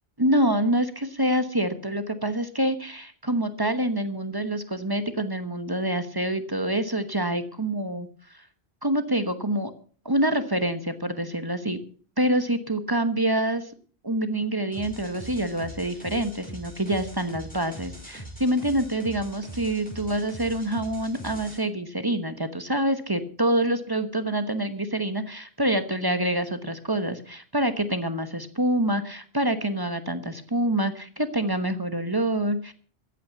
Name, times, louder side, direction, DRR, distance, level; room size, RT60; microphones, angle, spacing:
voice 1, 0.2-8.1 8.8-9.7 10.0-11.8 12.2-13.7 14.0-32.7, right 1 dB, 25° right, 10 dB, 1.1 m, -26 dB
sound 1, 14.7-21.6, equal, 10° left, 5.9 m, -42 dB
14.0 x 9.1 x 6.9 m, 0.43 s
omnidirectional pair, 1.0 m